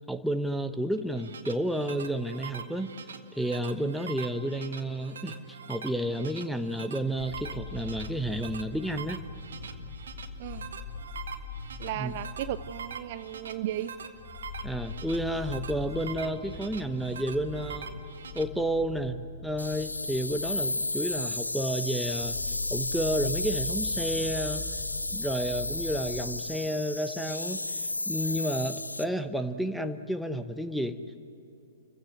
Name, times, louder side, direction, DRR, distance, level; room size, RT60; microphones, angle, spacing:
voice 1, 0.1-2.9 3.3-5.4 5.7-9.2 12.0-12.1 14.6-17.9 18.3-24.6 25.1-31.0, right 1 dB, ahead, 7 dB, 1.0 m, -31 dB
sound 1, 1.0-18.4, right 7 dB, 65° right, 1.7 m, -44 dB
sound 2, 7.2-26.4, left 4 dB, 35° left, 1.8 m, -42 dB
voice 2, 11.8-13.9, right 13 dB, 45° right, 14 dB, 0.6 m, -35 dB
sound 3, 19.6-29.0, left 2 dB, 85° left, 0.6 m, -33 dB
29.5 x 16.0 x 8.1 m, 2.8 s
figure-of-eight pair, 115°, 0 cm